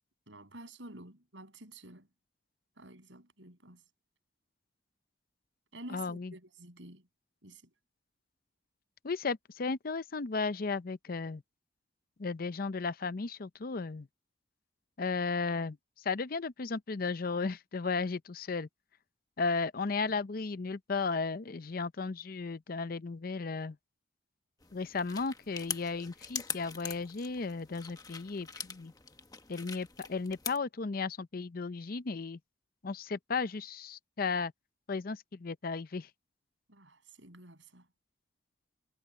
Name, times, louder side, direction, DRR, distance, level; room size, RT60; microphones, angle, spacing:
voice 1, 0.3-2.1 2.8-3.8 5.7-7.1 7.4-7.6 20.1-20.2 36.7-37.9, right 2 dB, 80° right, 7.5 m, -50 dB
voice 2, 5.9-6.3 9.0-11.4 12.2-14.1 15.0-15.8 16.1-18.7 19.4-23.8 24.7-28.9 29.5-32.4 32.8-34.5 34.9-36.1, left 4 dB, 50° left, 0.6 m, -35 dB
sound 1, 24.6-30.6, left 5 dB, 20° left, 1.3 m, -43 dB
head